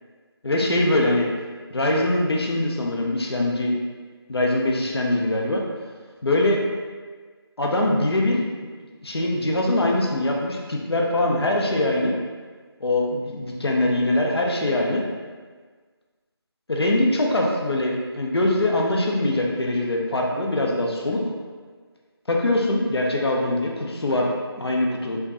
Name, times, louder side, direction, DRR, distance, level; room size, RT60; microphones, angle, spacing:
voice 1, 0.4-1.3 1.7-3.8 4.3-5.6 6.2-6.6 7.6-8.4 9.0-12.1 12.8-15.1 16.7-21.2 22.3-24.3 24.6-25.2, left 1 dB, 70° left, -1 dB, 0.7 m, -22 dB
4.5 x 2.2 x 2.9 m, 1.5 s
figure-of-eight pair, 180°, 14 cm